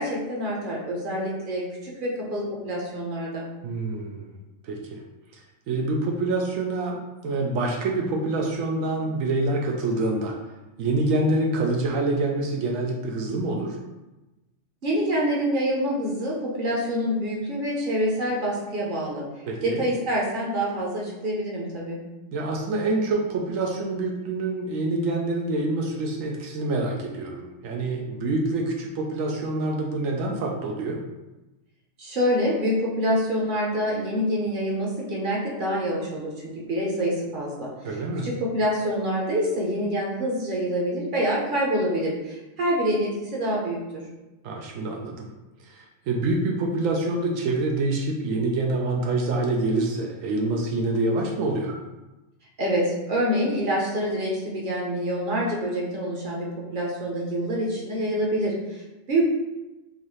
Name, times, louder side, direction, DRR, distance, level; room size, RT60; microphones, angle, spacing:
voice 1, 0.0-3.5 14.8-19.2 19.6-22.0 32.0-37.7 38.2-44.1 52.6-58.8 59.1-59.3, equal, 45° right, -3 dB, 0.9 m, -26 dB
voice 2, 3.6-4.4 4.6-5.0 5.3-10.3 10.8-13.8 19.5-19.8 22.3-31.0 37.8-38.3 44.4-45.3 45.6-51.8, right 2 dB, 80° right, 0 dB, 1.0 m, -26 dB
3.9 x 2.6 x 3.1 m, 1.1 s
omnidirectional pair, 1.4 m